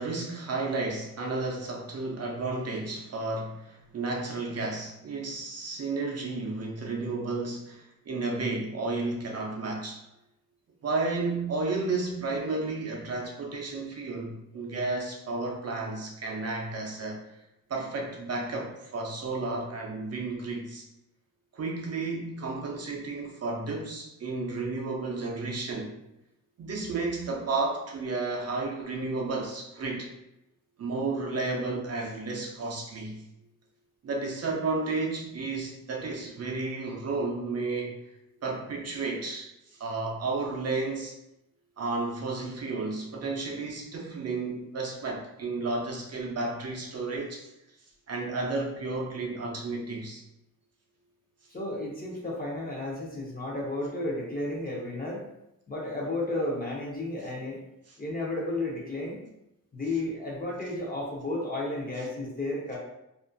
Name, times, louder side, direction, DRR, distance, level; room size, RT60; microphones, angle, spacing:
voice 1, 0.0-10.0 10.8-17.2 17.7-20.8 21.5-26.0 26.6-30.1 30.8-33.2 34.0-38.0 38.4-41.1 41.8-47.5 48.1-50.2 57.9-58.0, right 3 dB, 50° right, 0 dB, 0.4 m, -32 dB
voice 2, 51.5-55.3 55.7-57.6 58.0-59.2 59.7-62.8, left 2 dB, 30° left, -3 dB, 0.5 m, -33 dB
2.4 x 2.1 x 2.5 m, 0.86 s
wide cardioid pair, 175°, 33 cm